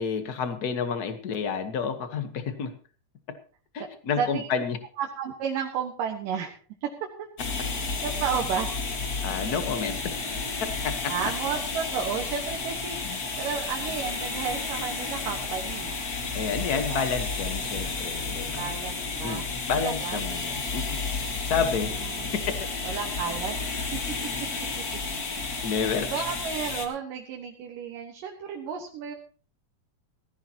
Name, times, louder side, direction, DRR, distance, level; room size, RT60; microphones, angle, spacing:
voice 1, 0.0-2.8 3.7-4.8 9.2-10.0 10.8-11.1 13.0-13.2 16.3-18.7 19.2-21.0 21.4-22.1 22.3-22.5 25.6-26.2, left 6 dB, 75° left, 8 dB, 0.8 m, -30 dB
voice 2, 4.2-4.5 5.0-6.9 7.2-7.3 7.6-8.7 11.1-16.0 16.7-17.1 18.6-20.2 22.0-22.3 22.8-23.6 23.9-24.2 25.4-25.7 26.1-29.2, right 7 dB, 85° right, 2 dB, 3.1 m, -33 dB
sound 1, 7.4-26.9, left 4 dB, 35° left, 1.6 m, -32 dB
17.5 x 14.5 x 2.9 m, 0.39 s
omnidirectional pair, 3.7 m